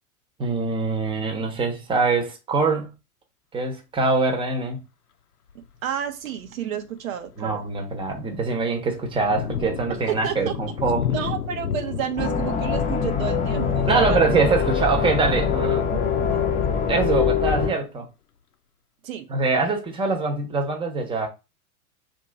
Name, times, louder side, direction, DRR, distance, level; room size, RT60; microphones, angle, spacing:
voice 1, 0.4-2.9 3.5-4.8 7.4-11.1 13.9-15.9 16.8-18.1 19.3-21.3, right 3 dB, 10° right, 0.9 m, -23 dB
Thunder, 5.5-5.8 6.4-6.5 7.0-17.5, left 8 dB, 85° left, 0.7 m, -34 dB
voice 2, 5.5-7.6 9.9-10.5 11.1-14.2 15.9-16.0 16.3-16.5 19.0-19.3, right 9 dB, 65° right, 0.8 m, -30 dB
sound 1, 12.2-17.7, left 6 dB, 15° left, 0.8 m, -23 dB
sound 2, 13.2-17.1, left 7 dB, 55° left, 0.8 m, -35 dB
3.0 x 2.6 x 4.4 m
hypercardioid pair, 105°, 44 cm